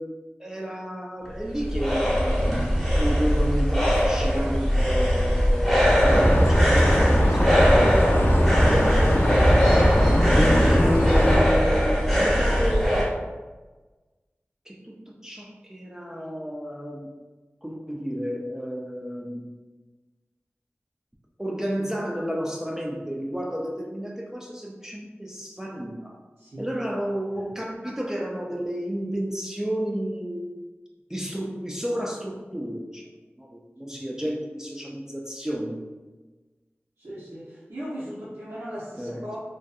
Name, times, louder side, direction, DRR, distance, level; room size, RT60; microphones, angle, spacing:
voice 1, 0.0-9.2 10.3-13.2 14.7-17.1 17.6-19.5 21.4-26.2 26.6-30.5 31.1-33.1 33.4-36.0 39.0-39.3, equal, 10° right, -1 dB, 0.3 m, -31 dB
sound 1, 1.2-13.1, equal, 5° left, 0.8 m, -21 dB
sound 2, 6.0-11.4, equal, 55° left, 0.4 m, -20 dB
voice 2, 26.4-26.7 27.3-27.5 33.9-34.1 37.0-39.4, equal, 75° right, -11 dB, 0.6 m, -38 dB
2.6 x 2.2 x 2.3 m, 1.2 s
wide cardioid pair, 45°, 4 cm